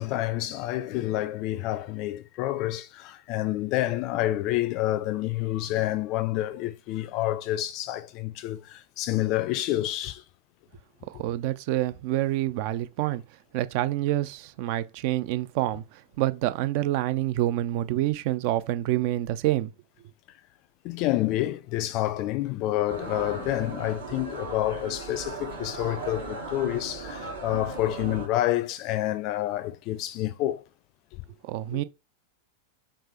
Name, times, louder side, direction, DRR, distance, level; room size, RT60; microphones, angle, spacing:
voice 1, 0.0-10.2 20.8-30.6 31.7-31.8, left 15 dB, 40° left, 0.4 m, -28 dB
voice 2, 11.1-13.2 13.5-15.8 16.2-19.7 31.4-31.8, right 15 dB, 45° right, 0.3 m, -27 dB
sound 1, 22.9-28.3, right 4 dB, 70° right, 1.2 m, -37 dB
3.5 x 3.3 x 3.2 m
figure-of-eight pair, 90°, 0 cm